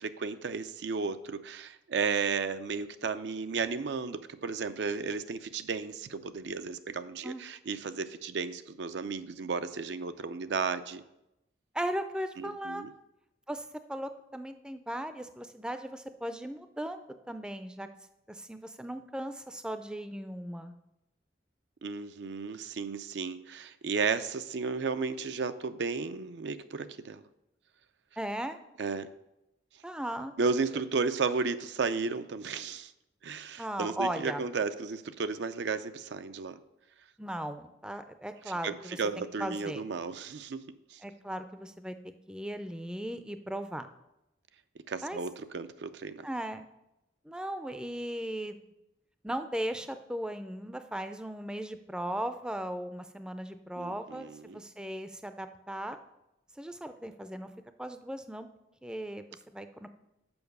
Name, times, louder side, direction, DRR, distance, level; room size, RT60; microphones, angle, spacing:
voice 1, 0.0-11.0 12.4-12.9 21.8-27.2 28.8-29.1 30.4-32.9 33.2-36.6 38.6-40.6 40.9-41.0 44.9-46.3 53.8-54.6, right 5 dB, 70° right, 11 dB, 0.5 m, -33 dB
voice 2, 11.7-12.9 13.5-17.9 18.3-20.7 28.2-28.6 29.8-30.3 33.6-34.4 37.2-39.8 41.0-43.9 45.0-45.2 46.2-46.7 47.2-48.6 49.2-56.0 56.6-57.5 57.8-58.5 58.8-59.9, right 1 dB, 5° right, 9 dB, 0.4 m, -37 dB
7.0 x 5.4 x 6.6 m, 0.89 s
head